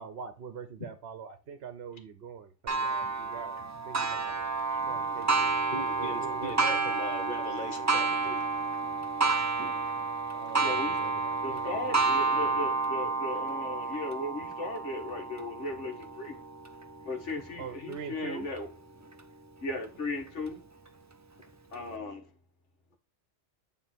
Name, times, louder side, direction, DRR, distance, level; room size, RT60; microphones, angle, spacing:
voice 1, 0.0-5.6 6.0-6.8 10.3-12.6 17.6-18.5, right 6 dB, 60° right, 1.0 m, -44 dB
Clock, 2.7-18.0 18.6-18.7 19.2-19.3 20.3-20.4, right 4 dB, 30° right, 0.3 m, -30 dB
voice 2, 4.8-5.3 5.7-8.4, left 2 dB, 45° left, 1.4 m, -40 dB
voice 3, 10.6-11.0 11.4-16.4 17.1-18.7 19.6-20.6 21.7-22.2, left 2 dB, 80° left, 2.0 m, -36 dB
8.8 x 3.7 x 4.3 m
omnidirectional pair, 1.2 m